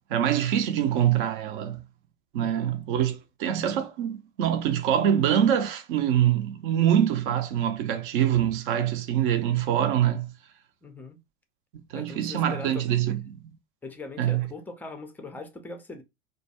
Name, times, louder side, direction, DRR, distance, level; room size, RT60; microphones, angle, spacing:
voice 1, 0.1-1.8 2.3-10.3 11.9-13.4 14.2-14.5, right 10 dB, 50° right, 0.6 m, -24 dB
voice 2, 2.4-2.7 10.8-11.2 11.9-12.9 13.8-16.0, left 3 dB, 5° left, 0.4 m, -41 dB
2.3 x 2.2 x 2.8 m
hypercardioid pair, 90°, 33 cm